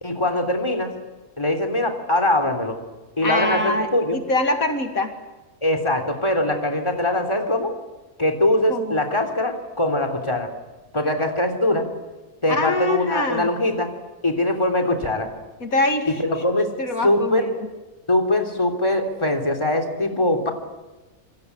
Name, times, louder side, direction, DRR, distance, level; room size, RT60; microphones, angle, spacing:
voice 1, 0.0-0.9 1.4-2.8 3.2-4.2 5.6-7.7 8.2-10.5 10.9-11.9 12.4-13.9 14.2-15.3 16.0-16.7 17.0-17.5 18.1-20.5, left 1 dB, 20° left, 4 dB, 3.3 m, -22 dB
voice 2, 3.2-5.1 8.7-9.0 12.5-13.5 15.6-16.1 16.8-17.7, left 2 dB, 75° left, 5 dB, 2.6 m, -24 dB
27.5 x 24.5 x 8.3 m, 1.1 s
omnidirectional pair, 1.5 m